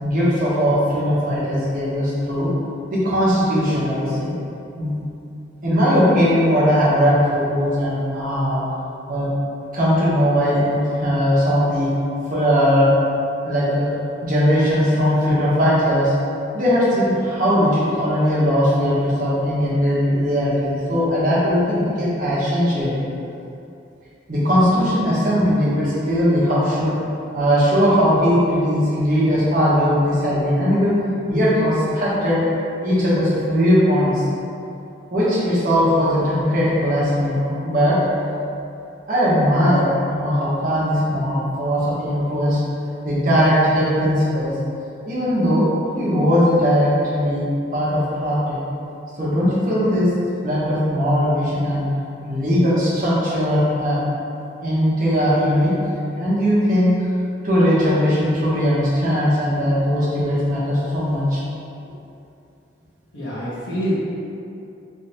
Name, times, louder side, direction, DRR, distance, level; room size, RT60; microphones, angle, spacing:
voice 1, 0.0-2.5 2.9-4.3 4.8-4.9 5.6-8.6 9.1-9.3 9.7-11.9 12.3-12.9 13.4-13.9 14.2-16.1 16.5-23.0 24.3-26.9 27.3-30.9 31.3-32.4 32.8-34.2 35.1-38.0 39.1-42.6 43.0-44.5 45.1-45.7 45.9-47.4 47.7-48.6 49.2-50.1 50.4-51.8 52.3-54.0 54.6-55.7 56.2-56.9 57.4-61.4, equal, 45° right, -9 dB, 1.0 m, -19 dB
voice 2, 63.1-63.9, equal, 80° left, -9 dB, 1.3 m, -26 dB
3.3 x 3.3 x 2.8 m, 2.7 s
head